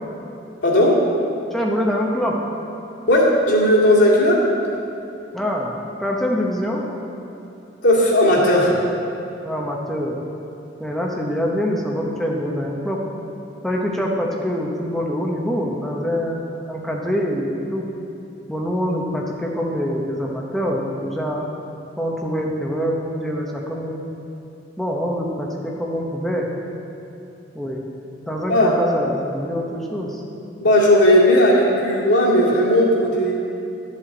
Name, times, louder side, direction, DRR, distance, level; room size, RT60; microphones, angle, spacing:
voice 1, 0.6-1.0 3.1-4.4 7.8-8.7 28.5-28.7 30.6-33.3, left 1 dB, 85° left, -6 dB, 2.3 m, -15 dB
voice 2, 1.5-2.4 5.3-6.9 9.4-10.2 10.8-13.0 13.6-17.9 18.5-21.5 22.0-24.1 24.8-26.5 27.5-27.8 28.3-30.2, equal, ahead, -2 dB, 0.8 m, -25 dB
11.5 x 7.4 x 3.9 m, 2.8 s
head